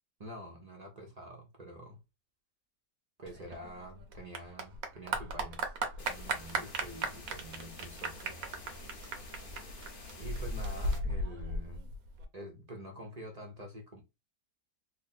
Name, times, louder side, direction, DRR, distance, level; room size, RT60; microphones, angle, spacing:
voice 1, 0.2-2.0 3.2-8.2 10.2-11.9 12.3-14.0, equal, 35° right, 0.6 m, -47 dB
Clapping / Applause, 3.3-12.2, right 2 dB, 60° right, 1.1 m, -36 dB
sound 1, 6.0-11.0, left 2 dB, 40° left, 0.9 m, -49 dB
3.3 x 2.1 x 4.1 m
omnidirectional pair, 1.8 m